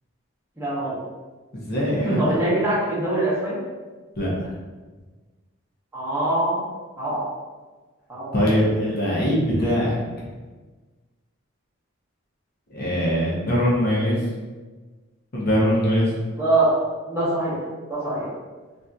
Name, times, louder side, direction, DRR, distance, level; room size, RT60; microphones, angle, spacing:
voice 1, 0.6-1.0 2.0-3.6 5.9-6.7 7.0-7.2 8.1-8.3 16.4-16.7 17.1-18.3, right 2 dB, 10° right, -9 dB, 0.7 m, -23 dB
voice 2, 1.7-2.3 4.2-4.3 8.3-10.0 12.7-14.2 15.3-16.1, equal, 45° left, -6 dB, 0.6 m, -21 dB
2.7 x 2.5 x 2.2 m, 1.3 s
head